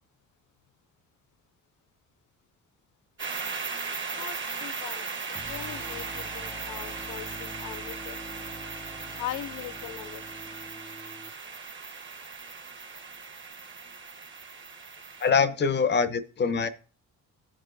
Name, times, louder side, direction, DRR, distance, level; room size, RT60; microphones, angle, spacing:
sound 1, 3.2-15.3, right 4 dB, 40° right, 1.3 m, -38 dB
voice 1, 4.2-5.1 5.5-8.2 9.1-10.2, left 13 dB, 85° left, 0.6 m, -40 dB
sound 2, 5.3-11.3, equal, 5° right, 0.5 m, -45 dB
voice 2, 15.2-16.7, left 5 dB, 35° left, 0.7 m, -24 dB
14.0 x 4.9 x 2.5 m
cardioid pair, 90°, 30 cm